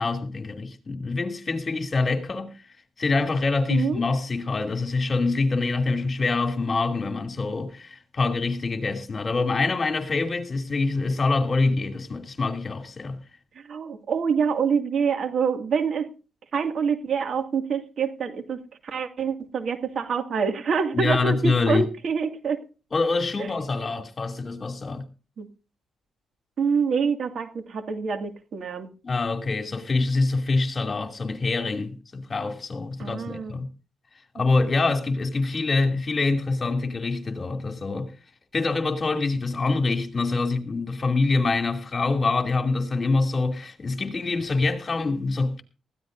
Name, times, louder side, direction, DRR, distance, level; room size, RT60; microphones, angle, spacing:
voice 1, 0.0-2.5 3.0-13.2 20.9-21.8 22.9-25.0 29.0-33.7 34.3-38.1 38.5-45.6, left 3 dB, 35° left, 2.7 m, -25 dB
voice 2, 3.7-4.0 13.6-16.1 16.5-22.6 25.4-25.5 26.6-28.9 33.0-33.6, right 6 dB, 60° right, 2.2 m, -26 dB
20.0 x 15.0 x 2.7 m
cardioid pair, 85°, 0 cm